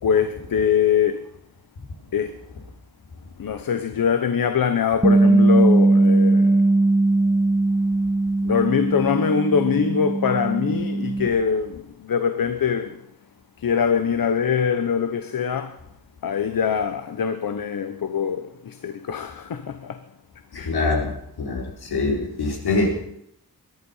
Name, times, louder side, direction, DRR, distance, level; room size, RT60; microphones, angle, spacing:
voice 1, 0.0-1.3 2.1-2.4 3.4-6.6 8.4-13.0 13.6-15.8 16.2-20.0 20.5-20.7, left 7 dB, 65° left, 1.1 m, -23 dB
Bass guitar, 5.0-11.3, right 2 dB, 10° right, 0.7 m, -19 dB
voice 2, 20.5-23.0, left 3 dB, 90° left, 4.4 m, -24 dB
22.5 x 11.0 x 5.7 m
wide cardioid pair, 130°, 37 cm